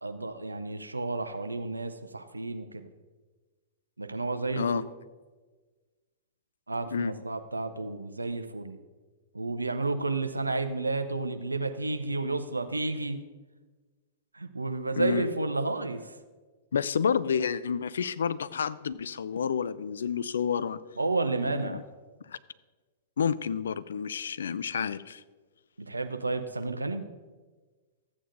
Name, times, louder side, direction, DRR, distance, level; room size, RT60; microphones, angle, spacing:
voice 1, 0.0-2.9 4.0-4.8 6.7-8.8 9.3-13.2 14.3-16.1 21.0-21.8 25.8-27.1, right 3 dB, 90° right, 9 dB, 0.6 m, -31 dB
voice 2, 4.5-4.8 6.9-7.1 15.0-15.3 16.7-20.8 21.5-21.8 22.3-22.4 23.2-25.2, left 7 dB, 70° left, 17 dB, 0.3 m, -29 dB
14.0 x 8.7 x 2.6 m, 1.3 s
figure-of-eight pair, 105°, 0 cm